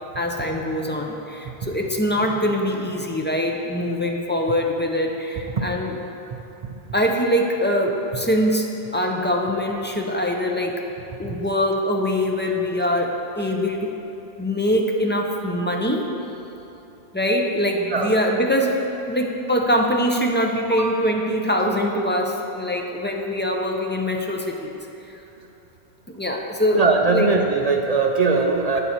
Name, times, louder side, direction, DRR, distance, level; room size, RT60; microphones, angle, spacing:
voice 1, 0.1-6.0 6.9-10.8 11.2-13.9 14.4-16.1 17.1-18.8 19.1-24.8 25.0-25.2 26.1-26.8 27.1-27.3, equal, 15° left, 1 dB, 0.4 m, -23 dB
voice 2, 26.7-28.8, right 4 dB, 50° right, 2 dB, 0.5 m, -20 dB
8.3 x 6.9 x 4.4 m, 3.0 s
omnidirectional pair, 1.1 m